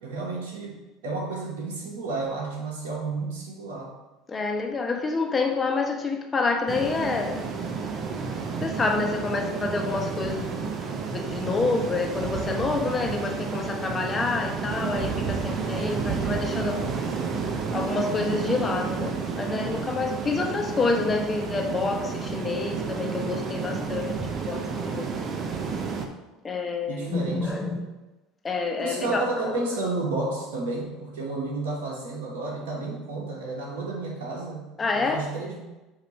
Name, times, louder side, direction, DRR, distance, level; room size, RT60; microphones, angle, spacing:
voice 1, 0.0-3.9 26.9-27.5 28.8-34.7 34.9-35.6, right 3 dB, 70° right, -3 dB, 1.2 m, -31 dB
voice 2, 4.3-7.5 8.6-10.5 11.1-16.8 17.7-24.2 24.4-24.6 24.9-25.2 26.4-27.8 28.4-29.4 34.8-35.2, left 3 dB, 25° left, 3 dB, 1.1 m, -28 dB
sound 1, 6.7-26.1, right 5 dB, 40° right, 0.9 m, -31 dB
7.7 x 2.9 x 5.2 m, 1.1 s
hypercardioid pair, 75°, 0 cm